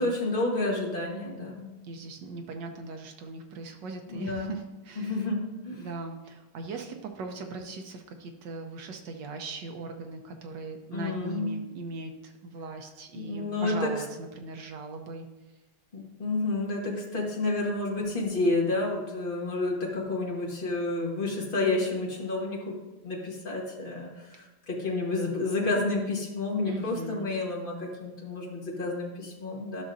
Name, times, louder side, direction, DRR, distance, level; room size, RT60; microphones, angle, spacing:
voice 1, 0.0-1.8 4.1-4.5 5.0-5.9 10.9-11.5 13.1-13.9 15.9-29.8, left 2 dB, 30° left, -2 dB, 1.3 m, -30 dB
voice 2, 1.8-5.2 5.8-15.2 26.6-27.3, right 3 dB, 65° right, 4 dB, 1.2 m, -39 dB
12.0 x 6.1 x 2.6 m, 1.1 s
omnidirectional pair, 2.4 m